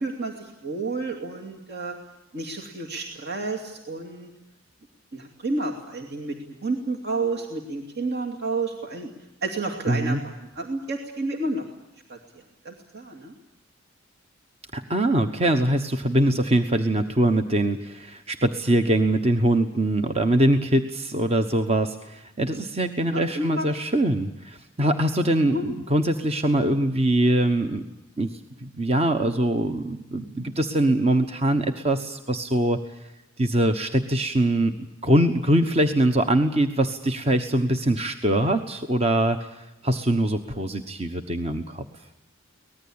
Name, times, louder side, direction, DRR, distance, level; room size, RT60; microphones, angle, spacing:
voice 1, 0.0-1.9 2.3-4.3 5.1-6.3 6.6-9.1 9.4-11.6 12.1-12.2 12.6-13.3 23.1-23.7 25.4-25.7, right 2 dB, 55° right, 1 dB, 2.6 m, -30 dB
voice 2, 9.9-10.2 14.7-27.8 28.2-32.8 33.4-34.8 35.0-41.8, right 1 dB, 30° right, 7 dB, 1.2 m, -23 dB
24.0 x 19.5 x 8.8 m, 0.96 s
head